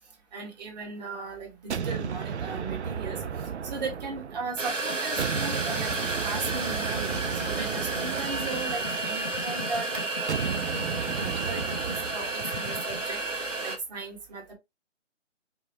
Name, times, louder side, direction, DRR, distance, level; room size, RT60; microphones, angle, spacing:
voice 1, 0.3-3.2 3.6-5.9 6.2-10.3 11.1-13.2 13.6-14.5, right 4 dB, 35° right, 1.6 m, -37 dB
sound 1, 1.7-4.7 5.2-9.4 10.3-12.4, right 7 dB, 65° right, 0.6 m, -34 dB
sound 2, 4.6-13.8, right 3 dB, 85° right, 1.4 m, -31 dB
sound 3, 4.9-13.0, left 1 dB, 10° left, 0.5 m, -40 dB
5.5 x 2.3 x 2.8 m
figure-of-eight pair, 150°, 37 cm